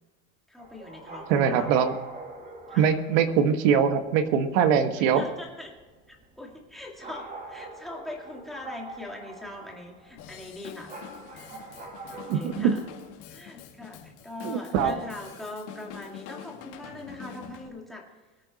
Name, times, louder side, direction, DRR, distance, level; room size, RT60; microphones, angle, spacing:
voice 1, 0.5-1.8 2.7-2.8 5.0-5.7 6.1-10.9 11.4-11.6 12.1-12.8 13.3-18.0, left 2 dB, ahead, -2 dB, 2.2 m, -41 dB
sound 1, 0.6-13.2, right 2 dB, 20° right, 2.3 m, -45 dB
voice 2, 1.3-2.0 2.8-5.2 12.3-12.8 14.4-14.9, right 7 dB, 75° right, 8 dB, 1.6 m, -22 dB
Drum kit / Drum, 10.2-17.7, left 9 dB, 70° left, 2.6 m, -45 dB
22.5 x 8.9 x 4.1 m, 1.3 s
cardioid pair, 170°, 38 cm